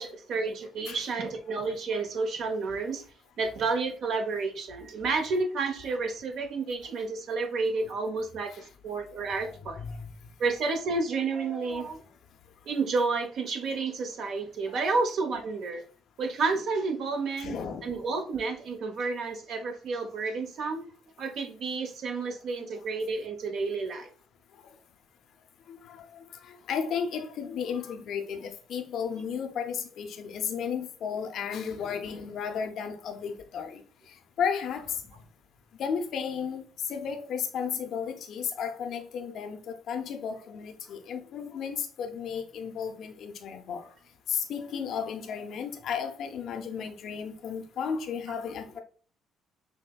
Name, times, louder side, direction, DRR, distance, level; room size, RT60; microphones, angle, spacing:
voice 1, 0.0-3.0 3.4-9.8 10.4-12.0 12.7-15.8 16.2-20.8 21.2-24.1, right 4 dB, 65° right, 0.8 m, -30 dB
voice 2, 9.8-10.1 14.7-14.8 17.4-17.9 25.7-33.8 34.1-35.0 35.8-43.9 44.3-48.8, left 7 dB, 65° left, 0.5 m, -34 dB
6.2 x 2.1 x 2.2 m
hypercardioid pair, 50°, 0 cm